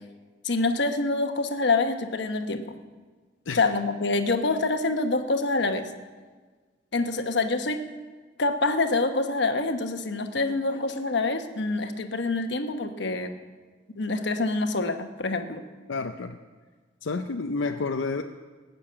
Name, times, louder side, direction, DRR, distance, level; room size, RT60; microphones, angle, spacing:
voice 1, 0.4-2.6 3.5-5.9 6.9-7.8 8.4-13.3 14.0-15.6, left 3 dB, 65° left, 7 dB, 1.1 m, -26 dB
voice 2, 15.9-16.4 17.0-18.2, left 3 dB, 85° left, 5 dB, 0.6 m, -30 dB
19.0 x 6.8 x 8.6 m, 1.4 s
head